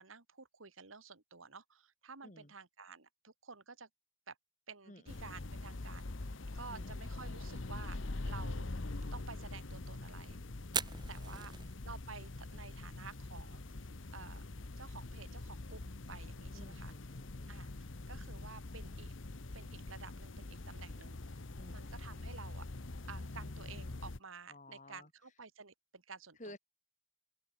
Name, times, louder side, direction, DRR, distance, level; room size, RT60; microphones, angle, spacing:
voice 1, 0.0-3.9 4.3-4.4 4.7-6.1 6.5-8.7 9.1-10.4 11.1-11.5 11.8-13.8 14.1-14.4 14.8-16.9 17.5-17.7 18.1-19.1 19.5-21.2 21.7-22.7 23.1-26.6, right 5 dB, 85° right, 2.4 m, -52 dB
voice 2, 2.2-2.5 4.9-5.5 6.7-7.0 10.9-11.8 16.5-17.7 21.6-22.0 24.5-25.1 26.4-26.6, left 1 dB, 35° left, 5.6 m, -55 dB
sound 1, 5.1-24.2, left 2 dB, 75° left, 1.1 m, -44 dB
Fire, 10.6-24.5, right 6 dB, 20° right, 4.5 m, -50 dB
open air
head